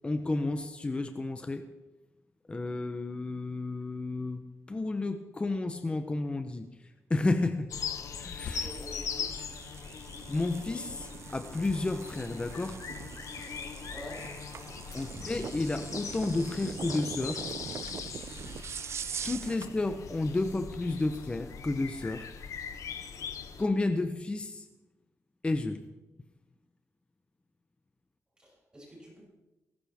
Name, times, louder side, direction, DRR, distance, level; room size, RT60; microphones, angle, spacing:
voice 1, 0.0-1.7 2.5-7.7 8.2-8.7 10.3-12.8 14.9-17.4 19.2-22.3 23.6-24.7 25.4-25.9, left 2 dB, 20° left, 7 dB, 0.8 m, -31 dB
sound 1, 7.7-23.6, left 6 dB, 70° left, 1.3 m, -41 dB
voice 2, 8.6-9.3 13.8-14.2 28.4-29.2, equal, 15° right, -5 dB, 7.0 m, -46 dB
sound 2, 8.7-19.7, right 7 dB, 55° right, 0.4 m, -43 dB
20.0 x 17.5 x 3.6 m, 1.1 s
wide cardioid pair, 135°, 6 cm